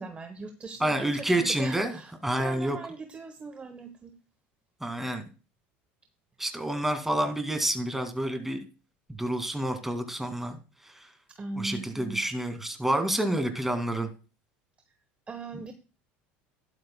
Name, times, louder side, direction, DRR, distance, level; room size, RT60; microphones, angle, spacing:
voice 1, 0.0-2.1 2.4-4.2 11.3-12.2 15.3-15.7, right 3 dB, 20° right, 8 dB, 1.0 m, -40 dB
voice 2, 0.8-2.0 2.2-2.8 4.8-5.2 6.4-8.6 9.1-11.1 11.6-14.1 15.5-15.6, right 1 dB, 5° right, 6 dB, 2.1 m, -29 dB
12.5 x 11.5 x 2.2 m, 0.33 s
supercardioid pair, 100°, 5 cm